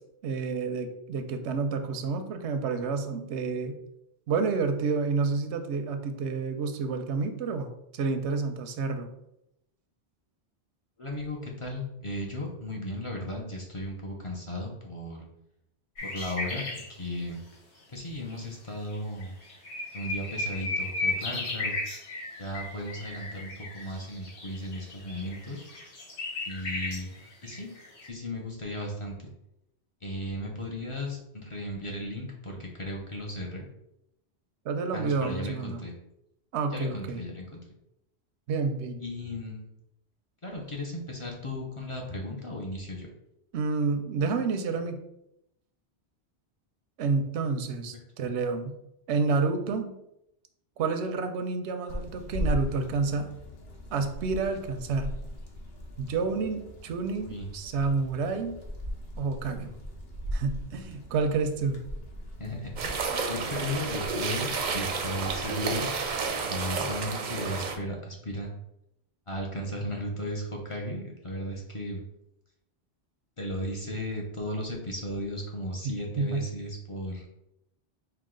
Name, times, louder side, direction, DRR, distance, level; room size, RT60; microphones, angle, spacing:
voice 1, 0.2-3.7 4.3-9.1 34.7-35.8 36.5-37.2 38.5-39.0 43.5-45.0 47.0-48.7 49.1-49.9 50.8-53.3 53.9-55.1 56.0-58.6 59.2-59.7 60.3-61.8 75.8-76.5, right 4 dB, 90° right, 7 dB, 0.9 m, -29 dB
voice 2, 11.0-15.2 16.0-17.4 17.9-19.3 19.9-21.7 22.4-25.6 26.5-27.1 27.4-27.7 28.0-29.3 30.0-33.6 34.9-35.9 36.7-37.6 39.0-39.7 40.4-43.1 57.3-57.5 62.4-63.0 63.3-65.9 66.5-68.5 69.3-72.0 73.4-77.3, left 1 dB, 35° left, -1 dB, 0.6 m, -35 dB
sound 1, 16.0-16.9 18.3-18.4 18.9-19.0 19.2-28.1, left 2 dB, 85° left, 1.3 m, -35 dB
sound 2, 51.9-67.1, equal, 65° left, 1.0 m, -39 dB
sound 3, 62.8-67.8, right 4 dB, 55° right, 0.5 m, -31 dB
4.8 x 2.3 x 3.7 m, 0.82 s
omnidirectional pair, 1.1 m